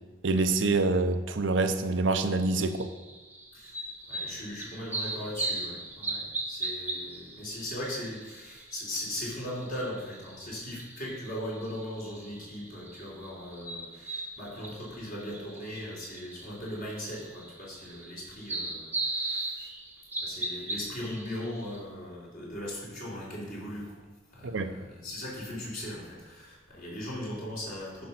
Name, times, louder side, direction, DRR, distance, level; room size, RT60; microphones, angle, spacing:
voice 1, 0.2-2.9 24.4-24.7, right 3 dB, 65° right, 8 dB, 0.7 m, -26 dB
sound 1, 2.3-21.8, right 2 dB, 10° right, 1.1 m, -39 dB
voice 2, 4.1-19.7 20.2-24.0 24.3-28.1, left 1 dB, 45° left, -5 dB, 3.6 m, -39 dB
10.5 x 5.3 x 6.0 m, 1.2 s
head